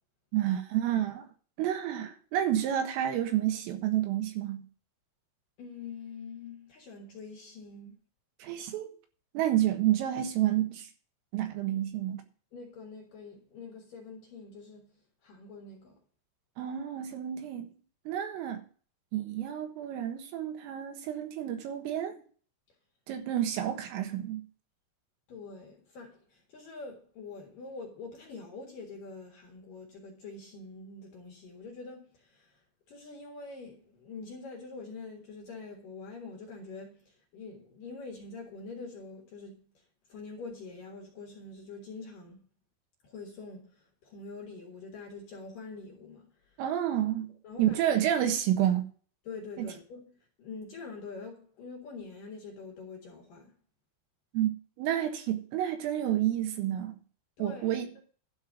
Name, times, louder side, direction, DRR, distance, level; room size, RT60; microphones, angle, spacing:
voice 1, 0.3-1.3 1.6-4.6 8.4-8.9 9.4-10.9 11.3-12.2 16.6-17.7 18.1-18.7 19.1-22.2 23.1-24.4 46.6-47.3 47.6-48.9 49.6-49.7 54.3-54.5 54.8-57.0 57.4-57.9, right 11 dB, 80° right, 4.0 m, -29 dB
voice 2, 5.6-8.0 12.5-16.0 25.3-42.5 43.0-46.6 47.4-47.8 49.2-53.6 57.4-58.0, left 4 dB, 55° left, 2.7 m, -45 dB
12.0 x 4.5 x 8.4 m
omnidirectional pair, 5.9 m